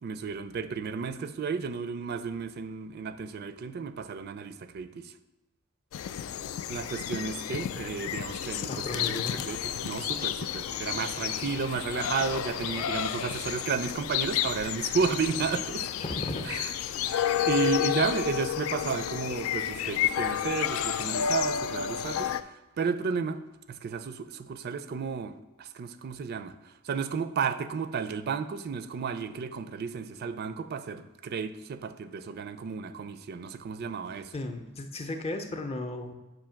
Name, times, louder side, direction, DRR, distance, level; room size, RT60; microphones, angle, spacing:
voice 1, 0.0-5.1 6.7-15.9 16.4-16.7 17.0-23.4 23.7-34.3, right 5 dB, 50° right, 12 dB, 0.4 m, -33 dB
sound 1, 5.9-22.4, left 10 dB, 75° left, 0.3 m, -31 dB
voice 2, 8.7-9.5 16.0-16.7 34.3-36.1, left 2 dB, 30° left, 5 dB, 0.5 m, -35 dB
7.4 x 2.7 x 5.7 m, 1.1 s
head